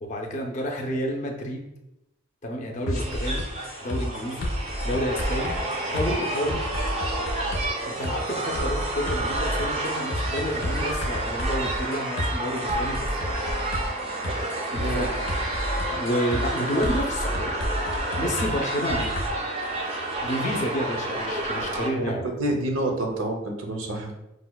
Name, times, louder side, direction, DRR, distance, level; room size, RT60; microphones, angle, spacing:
voice 1, 0.0-1.6 2.4-3.4 3.8-4.5 4.8-5.5 5.9-6.6 7.9-13.3 14.7-15.1 15.9-17.6 18.2-19.1 20.2-22.2, equal, 35° left, 1 dB, 0.4 m, -30 dB
sound 1, 2.9-19.3, equal, 85° left, 0.6 m, -31 dB
sound 2, 2.9-21.9, right 2 dB, 30° right, 0.4 m, -30 dB
voice 2, 21.9-24.1, right 1 dB, 85° right, 2 dB, 0.6 m, -28 dB
4.8 x 2.1 x 2.2 m, 0.89 s
head